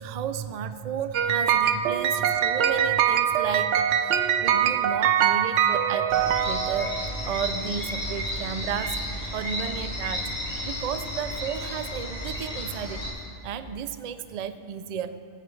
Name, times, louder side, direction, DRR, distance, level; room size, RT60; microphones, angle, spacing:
voice 1, 0.0-9.0 9.3-10.3 10.6-13.1 13.4-15.2, right 7 dB, 50° right, 11 dB, 0.5 m, -33 dB
sound 1, 1.1-7.2, right 9 dB, 85° right, 0.9 m, -23 dB
sound 2, 6.1-13.1, equal, 75° left, 2.8 m, -33 dB
21.5 x 8.9 x 3.2 m, 2.5 s
omnidirectional pair, 1.2 m